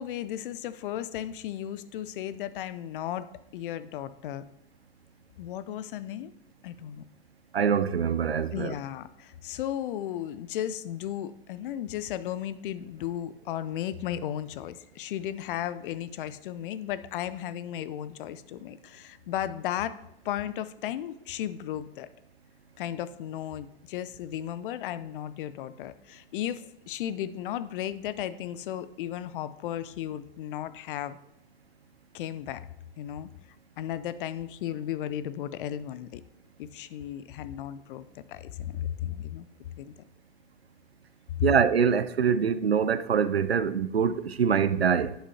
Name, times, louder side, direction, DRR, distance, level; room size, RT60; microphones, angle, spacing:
voice 1, 0.0-4.4 5.4-6.3 6.6-7.0 8.5-20.0 20.2-22.1 22.8-31.2 32.1-32.6 33.0-33.3 33.8-36.2 36.6-39.5 39.8-39.9, left 11 dB, 60° left, 0.7 m, -35 dB
voice 2, 7.5-8.7 41.4-45.1, right 7 dB, 90° right, 0.5 m, -24 dB
11.0 x 8.0 x 2.8 m
figure-of-eight pair, 85°, 30 cm